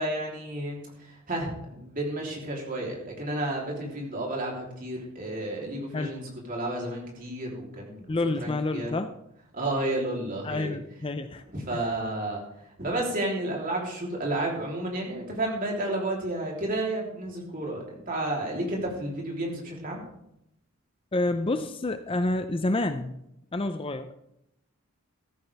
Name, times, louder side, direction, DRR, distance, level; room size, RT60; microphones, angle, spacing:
voice 1, 0.0-8.0 8.4-8.9 9.5-10.8 11.5-12.4 12.8-20.0, right 1 dB, 40° right, -2 dB, 3.4 m, -31 dB
voice 2, 8.1-9.1 10.4-11.4 11.7-11.8 21.1-23.2 23.5-24.1, left 2 dB, 25° left, 9 dB, 0.5 m, -28 dB
14.5 x 13.5 x 3.5 m, 0.80 s
head